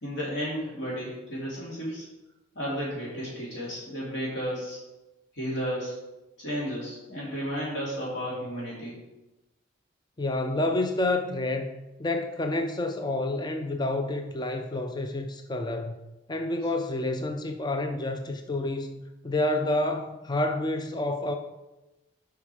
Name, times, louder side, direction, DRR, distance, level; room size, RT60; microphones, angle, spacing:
voice 1, 0.0-2.0 2.5-4.8 5.3-5.9 6.4-9.0, equal, 60° left, -6 dB, 2.7 m, -33 dB
voice 2, 10.2-16.0 16.3-21.4, left 2 dB, 20° left, 6 dB, 0.4 m, -29 dB
7.2 x 5.7 x 4.8 m, 1.0 s
head